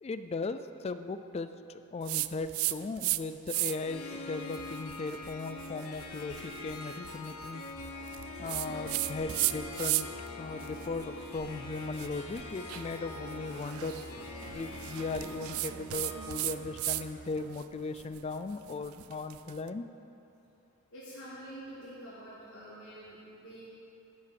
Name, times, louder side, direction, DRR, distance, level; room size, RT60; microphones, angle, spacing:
voice 1, 0.0-7.6 8.4-10.1 10.4-14.0 14.5-19.8, left 3 dB, 30° left, 10 dB, 0.3 m, -37 dB
sound 1, 2.1-3.2 3.5-4.0 4.5-10.3 10.6-17.1 17.4-19.6, right 17 dB, 80° right, 0.3 m, -36 dB
Harp, 3.5-18.0, left 3 dB, 90° left, 0.9 m, -44 dB
Musical instrument, 7.7-17.3, right 1 dB, 40° right, 2.5 m, -50 dB
voice 2, 20.9-23.7, right 1 dB, 60° left, -9 dB, 2.0 m, -47 dB
11.5 x 5.4 x 6.9 m, 2.8 s
head